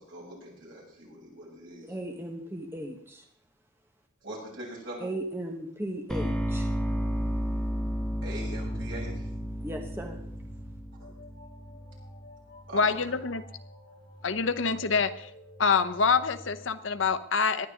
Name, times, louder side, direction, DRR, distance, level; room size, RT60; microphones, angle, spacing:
voice 1, 0.0-1.9 4.2-5.1 8.2-9.3 11.0-11.1 11.7-12.0 12.7-13.1, right 1 dB, 70° right, -4 dB, 7.2 m, -42 dB
voice 2, 1.8-3.2 5.0-6.7 9.6-10.2, right 1 dB, 10° right, 3 dB, 1.2 m, -36 dB
sound 1, 6.1-12.1, equal, 5° left, 1.4 m, -32 dB
sound 2, 8.3-17.1, equal, 60° left, 7.4 m, -49 dB
voice 3, 12.7-13.4 14.2-15.3 15.6-17.7, left 5 dB, 75° left, 11 dB, 0.8 m, -26 dB
19.0 x 11.5 x 3.7 m, 0.65 s
head